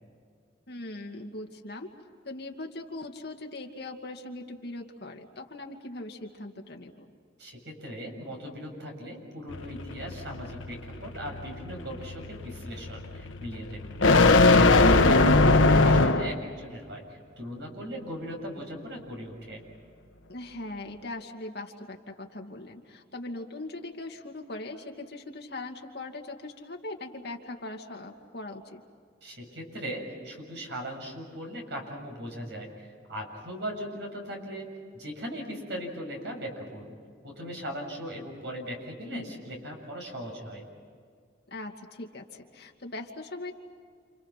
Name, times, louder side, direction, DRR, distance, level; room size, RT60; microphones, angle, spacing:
voice 1, 0.7-1.9 2.3-7.1 20.3-28.8 39.1-39.4 41.5-43.5, left 2 dB, 55° left, 2 dB, 2.4 m, -40 dB
voice 2, 7.4-14.2 14.5-19.6 29.2-34.7 34.9-37.0 37.2-40.7, equal, 65° right, 1 dB, 7.5 m, -38 dB
sound 1, 9.5-16.5, left 3 dB, 90° left, 1.2 m, -21 dB
29.5 x 29.0 x 5.9 m, 2.1 s
head